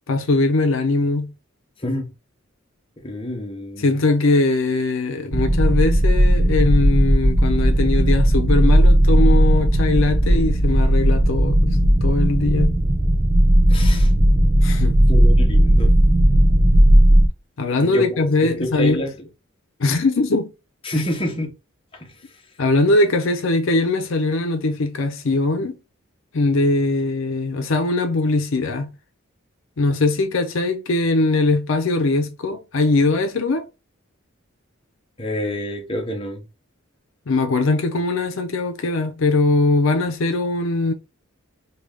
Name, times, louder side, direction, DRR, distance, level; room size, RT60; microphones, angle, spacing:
voice 1, 0.1-1.3 3.8-12.8 14.6-15.0 17.6-19.0 19.8-20.5 20.9-21.0 22.6-25.8 26.3-28.9 29.8-33.7 37.3-40.9, left 2 dB, 75° left, 0.6 m, -21 dB
voice 2, 1.8-2.1 3.0-3.9 13.7-14.1 15.1-15.9 17.8-19.1 20.8-21.5 21.9-22.1 35.2-36.4, left 1 dB, 25° left, 0.8 m, -28 dB
sound 1, 5.3-17.3, right 1 dB, 15° right, 0.3 m, -15 dB
3.2 x 2.3 x 3.3 m
head